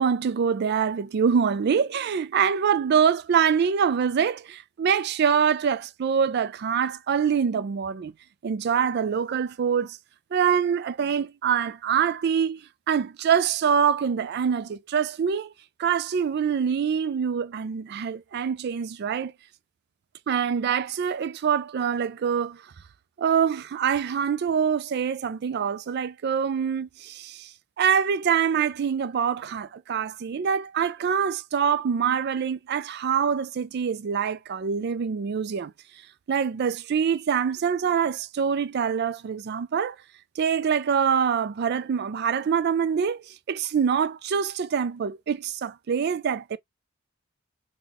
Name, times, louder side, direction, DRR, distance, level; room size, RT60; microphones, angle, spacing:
voice 1, 0.0-8.1 8.4-10.0 10.3-12.6 12.9-15.5 15.8-19.3 20.3-22.6 23.2-27.5 27.8-35.7 36.3-40.0 40.4-46.6, right 7 dB, 55° right, 0.4 m, -25 dB
3.9 x 2.2 x 2.9 m
head